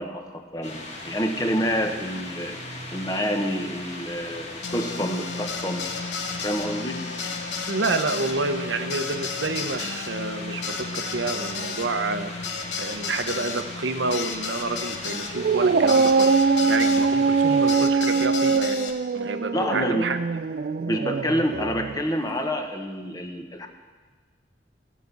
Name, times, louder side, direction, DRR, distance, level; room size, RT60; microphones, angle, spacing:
voice 1, 0.0-2.6 2.9-5.8 6.4-7.0 19.5-20.0 20.8-23.7, equal, 20° left, 5 dB, 1.0 m, -28 dB
sound 1, 0.6-17.8, left 2 dB, 35° left, 1.8 m, -39 dB
sound 2, 4.6-17.1 17.7-18.9, left 5 dB, 70° left, 1.1 m, -33 dB
voice 2, 7.7-12.5 12.8-18.9 19.1-20.2, right 3 dB, 75° right, 8 dB, 0.8 m, -29 dB
Dog, 15.3-22.0, right 4 dB, 50° right, 0.3 m, -22 dB
16.0 x 5.9 x 8.0 m, 1.4 s
head